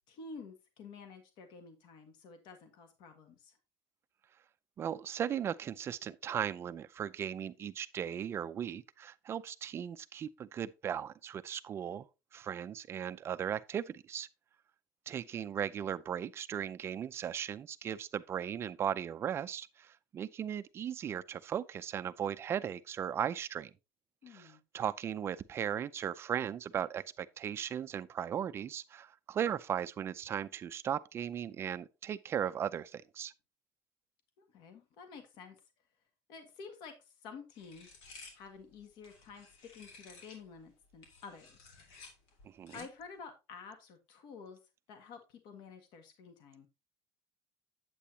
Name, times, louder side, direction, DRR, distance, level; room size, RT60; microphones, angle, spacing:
voice 1, 0.1-3.6 24.2-24.6 34.4-35.6 36.3-37.9 38.3-39.5 39.7-41.8 42.7-44.6 44.9-46.7, left 5 dB, 55° left, 1.7 m, -50 dB
voice 2, 4.8-12.1 12.3-14.3 15.1-23.7 24.3-33.3 42.4-42.8, right 9 dB, 30° right, 0.5 m, -37 dB
sound 1, 37.5-40.5 40.9-43.0, left 4 dB, 75° left, 3.3 m, -55 dB
8.4 x 8.3 x 2.9 m
cardioid pair, 165°, 9 cm